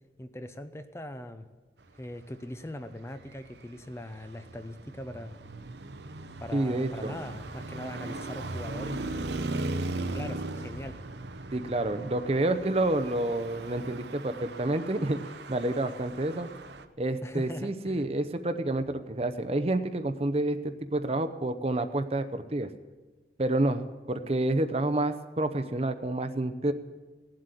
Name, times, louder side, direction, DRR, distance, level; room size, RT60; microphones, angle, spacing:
voice 1, 0.2-1.5 2.0-5.4 6.4-9.1 10.0-11.0 17.2-18.1, left 1 dB, 15° left, 9 dB, 0.6 m, -41 dB
Traffic noise roadway noise, 3.1-16.9, right 2 dB, 75° right, 0.8 m, -38 dB
voice 2, 6.5-7.1 11.5-16.5 17.0-22.7 23.4-26.7, right 1 dB, 35° right, 9 dB, 0.7 m, -29 dB
17.0 x 7.7 x 9.8 m, 1.3 s
head